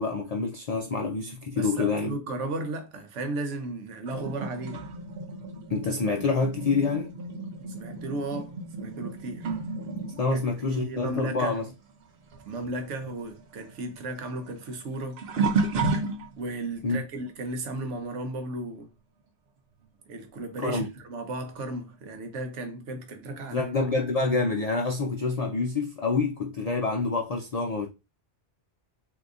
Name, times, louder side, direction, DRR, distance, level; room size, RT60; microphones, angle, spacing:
voice 1, 0.0-2.2 5.7-7.1 10.2-11.7 16.8-17.0 20.6-20.9 23.5-27.9, left 3 dB, 70° left, 0.3 m, -27 dB
voice 2, 1.5-4.8 7.7-9.5 10.3-11.6 12.5-15.2 16.4-18.9 20.1-23.7, right 2 dB, 85° right, 1.1 m, -35 dB
sound 1, 4.1-12.1 12.3-16.6 17.3-17.6 19.8-19.9 20.8-20.9, right 3 dB, 65° right, 0.8 m, -33 dB
3.6 x 2.8 x 2.4 m
omnidirectional pair, 1.2 m